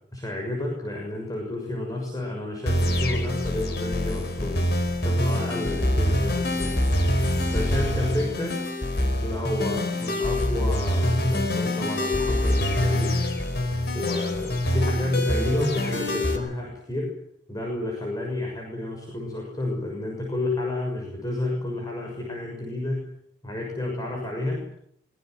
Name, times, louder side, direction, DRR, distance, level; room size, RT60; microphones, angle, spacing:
voice 1, 0.1-4.7 5.0-6.9 7.5-8.6 9.2-13.3 13.9-17.1 17.5-23.1 23.4-24.6, left 2 dB, 20° left, 0 dB, 6.4 m, -30 dB
sound 1, 2.7-16.4, left 1 dB, 60° left, 5.0 m, -25 dB
24.5 x 23.0 x 7.8 m, 0.71 s
head